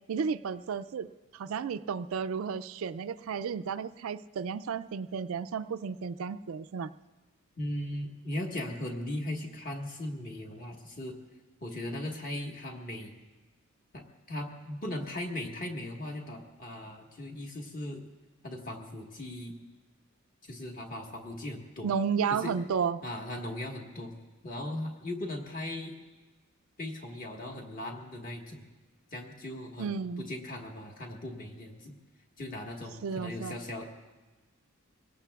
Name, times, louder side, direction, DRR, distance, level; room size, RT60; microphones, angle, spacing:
voice 1, 0.1-6.9 21.8-23.0 29.8-30.3 33.0-33.6, right 6 dB, 70° right, 12 dB, 0.4 m, -33 dB
voice 2, 7.6-11.1 11.6-13.2 13.9-18.0 18.4-19.5 20.5-21.9 22.4-22.5 23.0-24.1 24.4-25.9 26.8-28.7 29.1-31.9 32.4-33.9, left 1 dB, 40° left, 1 dB, 1.6 m, -38 dB
23.0 x 17.5 x 2.4 m, 1.2 s
head